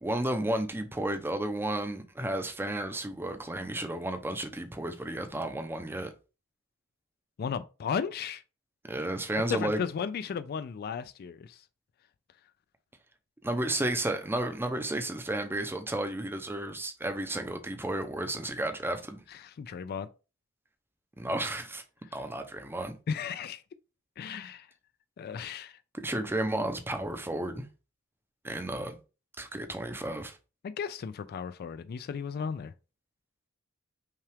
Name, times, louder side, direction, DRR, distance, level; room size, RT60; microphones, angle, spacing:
voice 1, 0.0-6.1 8.9-9.8 13.4-19.2 21.2-21.8 22.1-23.0 26.0-27.7 28.4-29.0 29.4-30.4, right 1 dB, 10° right, 0.6 m, -32 dB
voice 2, 7.4-8.4 9.5-11.6 19.6-20.1 23.1-23.6 24.2-24.7 25.2-25.8 30.6-32.7, left 6 dB, 45° left, 0.3 m, -35 dB
5.6 x 2.4 x 3.3 m
head